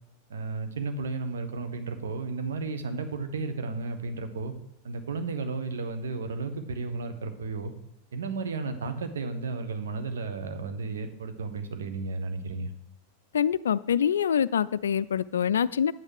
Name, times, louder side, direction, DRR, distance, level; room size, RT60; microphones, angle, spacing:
voice 1, 0.3-4.5 4.8-7.7 8.1-12.7, right 3 dB, 65° right, 8 dB, 1.2 m, -33 dB
voice 2, 13.3-15.9, left 8 dB, 65° left, 18 dB, 0.3 m, -25 dB
9.4 x 8.7 x 4.8 m, 0.85 s
figure-of-eight pair, 90°, 0 cm